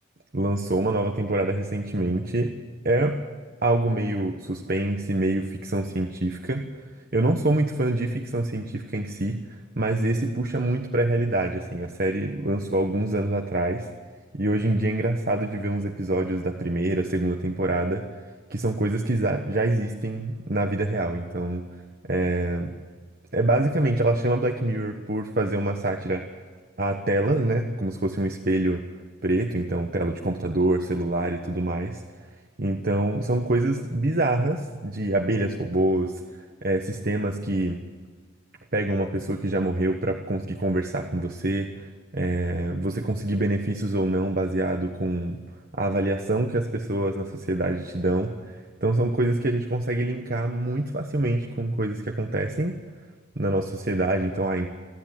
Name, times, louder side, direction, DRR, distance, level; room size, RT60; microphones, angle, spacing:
voice 1, 0.3-2.6 2.8-3.2 3.6-6.7 7.1-9.5 9.8-13.9 14.3-18.1 18.5-21.7 22.0-22.7 23.3-26.3 26.8-28.8 29.2-32.0 32.6-37.8 38.7-41.8 42.1-45.4 45.7-52.8 53.3-54.7, right 1 dB, 50° right, 3 dB, 1.4 m, -25 dB
29.5 x 11.0 x 9.2 m, 1.5 s
head